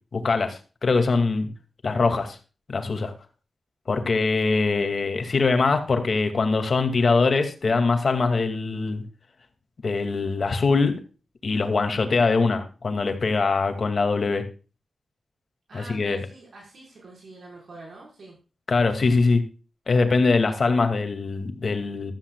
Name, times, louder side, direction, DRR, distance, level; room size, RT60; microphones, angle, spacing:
voice 1, 0.1-1.5 1.8-2.4 2.7-3.1 3.9-9.0 9.8-10.9 11.4-14.4 15.7-16.2 18.7-19.4 19.9-22.1, left 4 dB, 50° left, 6 dB, 2.3 m, -22 dB
voice 2, 15.7-18.4, right 2 dB, 65° right, -1 dB, 4.9 m, -45 dB
14.5 x 13.0 x 2.4 m, 0.34 s
wide cardioid pair, 115°, 0 cm